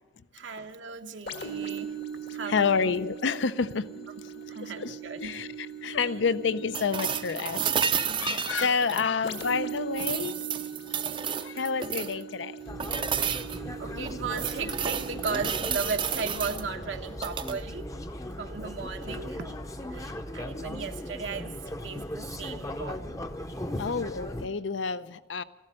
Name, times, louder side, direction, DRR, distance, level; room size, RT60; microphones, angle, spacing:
voice 1, 0.3-1.9 2.3-2.9 4.5-5.4 8.6-9.0 13.8-17.9 18.4-19.6 19.9-21.5 21.8-23.3, right 5 dB, 90° right, 4 dB, 1.0 m, -36 dB
sound 1, 1.3-18.8 19.3-19.5, right 6 dB, 65° left, 1.6 m, -41 dB
voice 2, 2.5-4.2 4.6-10.6 11.4-12.6 12.9-13.4 23.8-25.4, left 5 dB, 80° left, 15 dB, 0.6 m, -29 dB
sound 2, 6.7-9.6 9.9-12.2 12.8-13.6 14.0-16.6 17.1-17.6 19.6-19.7, right 7 dB, 25° right, 0.4 m, -31 dB
sound 3, 12.7-24.5, left 1 dB, 20° left, 0.6 m, -38 dB
14.0 x 12.0 x 7.5 m, 1.1 s
head